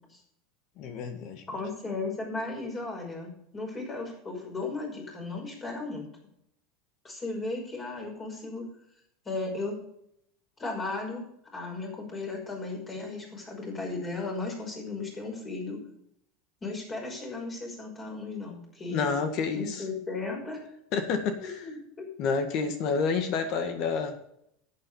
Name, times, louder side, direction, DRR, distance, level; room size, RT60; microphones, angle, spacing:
voice 1, 0.8-1.4 18.9-19.8 20.9-21.6 22.2-24.2, left 5 dB, 50° left, 7 dB, 1.7 m, -29 dB
voice 2, 1.5-6.1 7.0-8.6 9.3-9.8 10.6-11.2 11.5-15.8 16.6-19.2 19.5-20.6 21.6-22.1, left 3 dB, 20° left, 0 dB, 5.7 m, -35 dB
11.0 x 8.9 x 5.5 m, 0.73 s
supercardioid pair, 135°, 0 cm